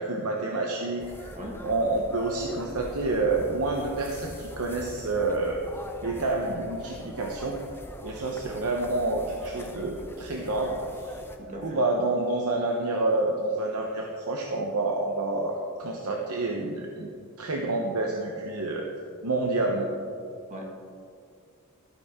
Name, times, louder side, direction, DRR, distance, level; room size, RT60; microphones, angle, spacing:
voice 1, 0.0-1.3 1.6-5.6 6.0-7.6 8.0-11.2 11.6-17.1 17.4-18.9 19.2-19.9, right 2 dB, 75° right, 0 dB, 0.9 m, -28 dB
sound 1, 1.0-11.4, left 1 dB, 10° left, 0.6 m, -43 dB
voice 2, 11.4-11.8 20.5-20.8, equal, 35° right, -1 dB, 1.8 m, -39 dB
13.0 x 9.1 x 3.7 m, 2.3 s
head